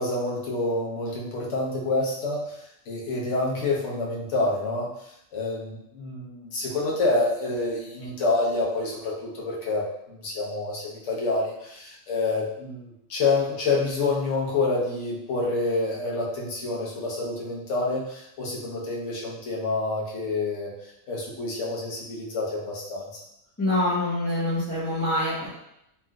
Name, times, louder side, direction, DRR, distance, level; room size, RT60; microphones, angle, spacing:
voice 1, 0.0-2.6 2.9-23.1, left 3 dB, 65° left, -4 dB, 1.1 m, -28 dB
voice 2, 23.6-25.5, left 1 dB, 15° left, -11 dB, 0.6 m, -25 dB
3.3 x 2.9 x 2.3 m, 0.80 s
omnidirectional pair, 1.4 m